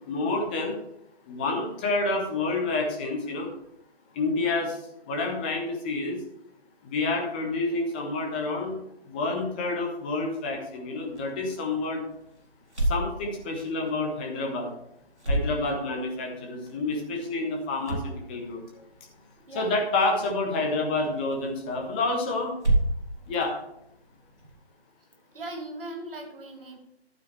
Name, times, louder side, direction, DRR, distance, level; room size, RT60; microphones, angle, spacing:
voice 1, 0.1-0.8 1.3-3.5 4.1-4.8 5.1-6.2 6.8-8.8 9.1-12.0 12.8-14.7 15.3-18.6 19.5-22.5 23.3-23.5, left 3 dB, 10° left, 1 dB, 0.8 m, -28 dB
sound 1, 11.0-24.6, right 1 dB, 90° right, 3.3 m, -34 dB
voice 2, 15.4-15.9 19.4-19.8 23.2-23.3 25.3-26.8, right 2 dB, 55° right, 2 dB, 2.6 m, -40 dB
11.5 x 9.0 x 3.3 m, 0.80 s
figure-of-eight pair, 145°, 34 cm